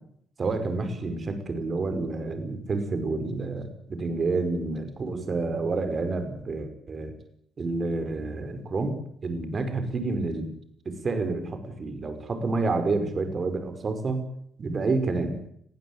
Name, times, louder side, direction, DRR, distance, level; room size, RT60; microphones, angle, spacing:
voice 1, 0.4-7.1 7.6-10.5 10.9-14.3 14.6-15.4, right 3 dB, 40° right, 8 dB, 5.4 m, -29 dB
22.0 x 15.5 x 9.8 m, 0.69 s
cardioid pair, 90°, 0 cm